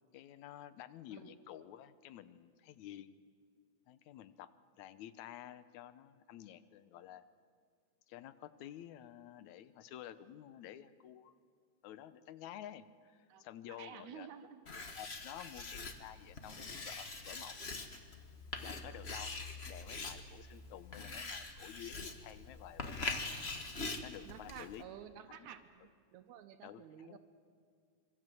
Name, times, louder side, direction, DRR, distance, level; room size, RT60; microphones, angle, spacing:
voice 1, 0.1-3.2 3.9-4.5 4.8-7.2 8.1-11.4 11.8-17.6 18.6-19.4 19.7-23.2 24.0-24.8 25.3-25.5 26.6-27.2, left 11 dB, 80° left, 13 dB, 2.2 m, -51 dB
voice 2, 13.3-14.6 24.2-27.2, right 9 dB, 80° right, 7 dB, 2.3 m, -52 dB
Writing, 14.7-24.8, left 3 dB, 30° left, 1.2 m, -43 dB
26.0 x 24.5 x 7.8 m, 2.1 s
omnidirectional pair, 3.4 m